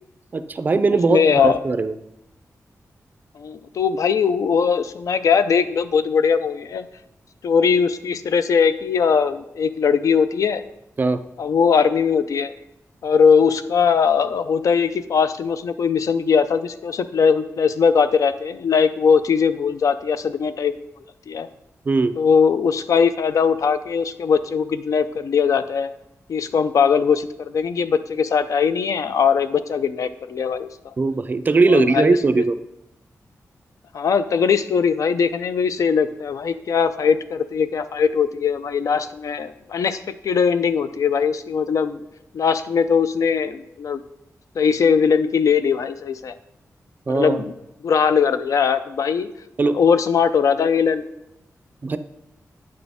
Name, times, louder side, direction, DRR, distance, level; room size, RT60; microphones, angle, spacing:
voice 1, 0.3-1.9 11.0-11.2 21.9-22.1 31.0-32.5 47.1-47.4 49.6-49.7 51.8-52.0, right 3 dB, 30° right, 11 dB, 0.4 m, -19 dB
voice 2, 1.1-1.6 3.4-6.9 7.4-10.6 11.4-12.5 13.0-20.7 21.3-21.5 22.2-25.9 26.3-30.9 31.7-32.2 33.9-42.0 42.3-44.0 44.6-46.3 47.1-47.5 47.8-49.3 49.7-51.0, left 6 dB, 70° left, 12 dB, 0.4 m, -20 dB
8.7 x 6.2 x 3.5 m, 0.85 s
wide cardioid pair, 175°, 6 cm